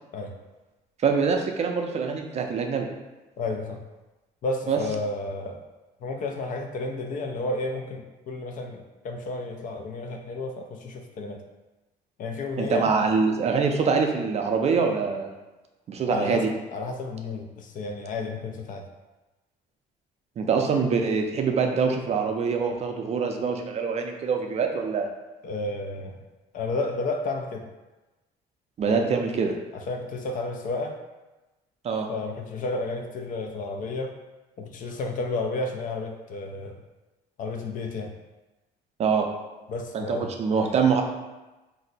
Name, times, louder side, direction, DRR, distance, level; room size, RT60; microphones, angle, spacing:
voice 1, 1.0-2.9 4.7-4.8 12.6-15.3 15.9-16.4 20.4-25.1 28.8-29.5 31.8-32.1 39.0-39.3 39.9-41.0, right 5 dB, 40° right, 3 dB, 0.4 m, -24 dB
voice 2, 3.4-3.8 4.4-5.6 6.0-11.4 12.2-12.9 16.1-16.4 16.7-18.9 25.4-26.2 26.5-27.7 28.8-29.1 29.7-31.0 32.1-34.2 34.6-36.8 37.4-38.1 39.7-40.3, left 3 dB, 50° left, 4 dB, 0.4 m, -32 dB
2.6 x 2.0 x 3.9 m, 1.1 s
cardioid pair, 110°, 17 cm